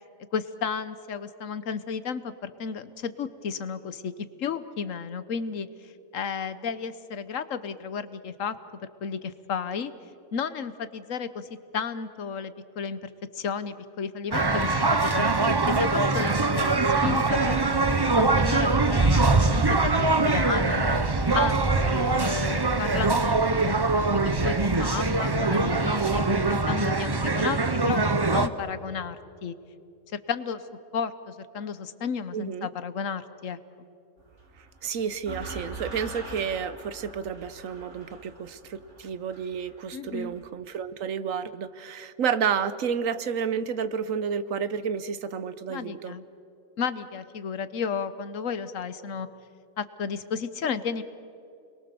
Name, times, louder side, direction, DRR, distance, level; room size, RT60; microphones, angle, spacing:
voice 1, 0.3-4.1 4.4-5.7 6.1-8.6 9.0-9.9 10.3-11.5 11.7-17.7 18.1-23.4 23.7-23.8 24.1-28.0 28.3-29.2 29.4-29.5 30.1-30.6 30.9-33.6 39.9-40.4 45.7-46.2 46.8-49.3 49.8-51.0, left 6 dB, 75° left, 13 dB, 1.4 m, -33 dB
sound 1, 14.3-28.5, right 3 dB, 25° right, 0.7 m, -23 dB
voice 2, 32.3-32.7 34.8-46.1, right 7 dB, 85° right, 14 dB, 1.3 m, -30 dB
sound 2, 34.2-40.5, right 2 dB, 65° right, 3.4 m, -43 dB
30.0 x 22.0 x 7.0 m, 2.7 s
omnidirectional pair, 1.3 m